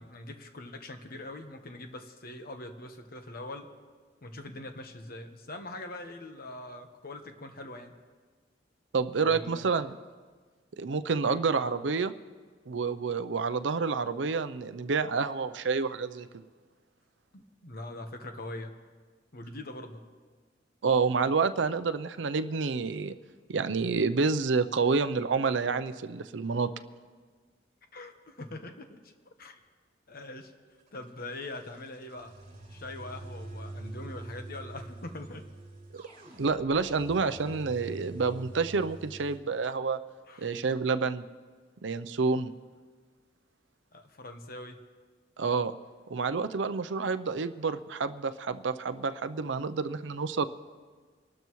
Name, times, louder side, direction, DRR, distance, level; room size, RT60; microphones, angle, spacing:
voice 1, 0.0-3.7 4.2-7.9 9.2-9.8 11.2-11.4 17.3-18.7 19.3-20.0 27.9-29.1 29.4-29.6 30.1-30.5 30.9-32.3 32.7-35.5 40.3-40.5 43.9-44.8, left 2 dB, 55° left, 6 dB, 1.1 m, -42 dB
voice 2, 8.9-10.0 10.8-12.1 12.7-16.3 20.8-23.1 23.5-26.7 35.9-36.0 36.4-40.0 40.4-41.2 41.8-42.5 45.4-45.7 46.1-50.5, right 4 dB, 70° right, 11 dB, 0.6 m, -28 dB
sound 1, 30.8-39.4, right 2 dB, 45° right, 4.4 m, -45 dB
25.5 x 12.5 x 3.1 m, 1.5 s
head